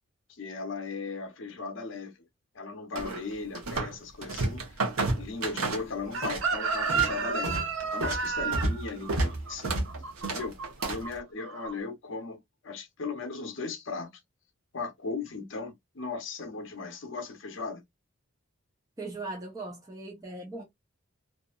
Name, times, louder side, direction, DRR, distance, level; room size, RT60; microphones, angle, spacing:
voice 1, 0.3-2.1 2.5-4.8 5.1-7.5 7.9-9.8 10.3-10.5 10.9-14.1 14.7-17.8, left 4 dB, 65° left, 0.7 m, -37 dB
sound 1, 2.9-3.9 4.2-6.4 6.7-11.1, right 2 dB, 90° right, 0.9 m, -31 dB
Chicken rooster, 6.1-11.1 11.4-11.7, right 5 dB, 70° right, 0.6 m, -31 dB
voice 2, 19.0-20.6, right 2 dB, 15° right, 0.6 m, -39 dB
2.8 x 2.4 x 2.2 m
head